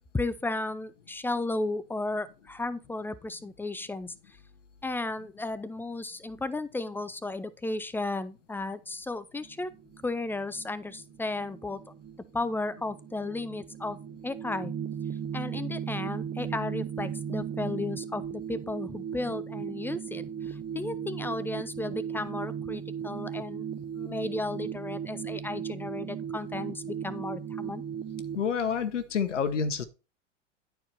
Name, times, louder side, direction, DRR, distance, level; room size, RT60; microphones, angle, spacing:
voice 1, 0.1-4.4 4.8-9.7 10.0-11.8 12.3-14.0 14.2-14.7 15.3-23.7 23.9-27.8, left 2 dB, 5° left, 0.5 m, -34 dB
sound 1, 9.4-28.4, right 8 dB, 25° right, 0.8 m, -37 dB
voice 2, 28.3-29.8, left 6 dB, 90° left, 1.0 m, -28 dB
10.5 x 4.6 x 4.1 m
hypercardioid pair, 105°, 36 cm